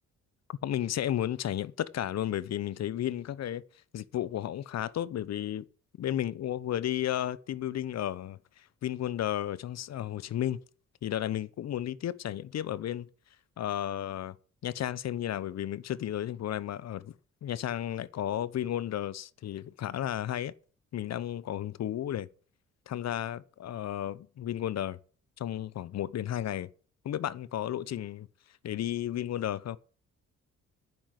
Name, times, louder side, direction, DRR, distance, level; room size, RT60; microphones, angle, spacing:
voice 1, 0.5-3.6 3.9-5.7 6.0-10.6 11.0-13.1 13.6-14.3 14.6-17.1 17.4-20.5 20.9-22.3 22.9-25.0 25.4-26.7 27.0-28.3 28.6-29.8, left 11 dB, 60° left, 0.9 m, -33 dB
10.0 x 7.5 x 9.3 m
cardioid pair, 90°, 30 cm